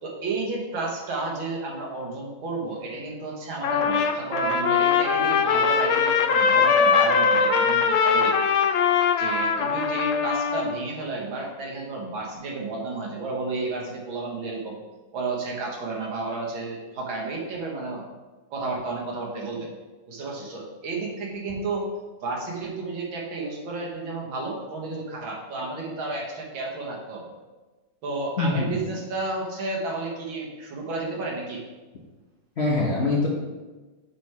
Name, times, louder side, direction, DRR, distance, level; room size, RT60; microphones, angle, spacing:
voice 1, 0.0-8.7 9.2-14.8 15.1-18.1 18.5-19.7 20.1-21.9 22.2-27.2 28.0-31.6, right 3 dB, 85° right, -2 dB, 2.1 m, -32 dB
Trumpet, 3.6-10.8, left 6 dB, 90° left, 1.4 m, -21 dB
voice 2, 28.4-28.7 32.6-33.3, left 3 dB, 55° left, -4 dB, 0.7 m, -23 dB
6.1 x 4.4 x 4.7 m, 1.3 s
omnidirectional pair, 2.1 m